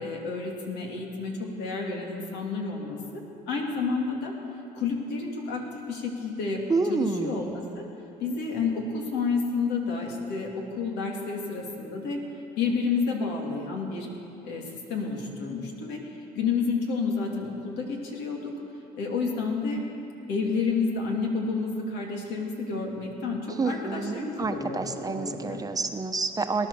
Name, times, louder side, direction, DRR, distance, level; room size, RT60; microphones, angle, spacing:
voice 1, 0.0-4.3 4.7-6.6 6.9-7.9 8.2-12.2 12.6-14.1 14.4-16.0 16.3-18.5 18.9-19.8 20.3-25.6, left 4 dB, 85° left, 0 dB, 2.6 m, -30 dB
voice 2, 6.7-7.3 23.6-26.7, right 4 dB, 20° right, 6 dB, 0.9 m, -28 dB
19.0 x 11.0 x 7.0 m, 2.8 s
cardioid pair, 110°, 17 cm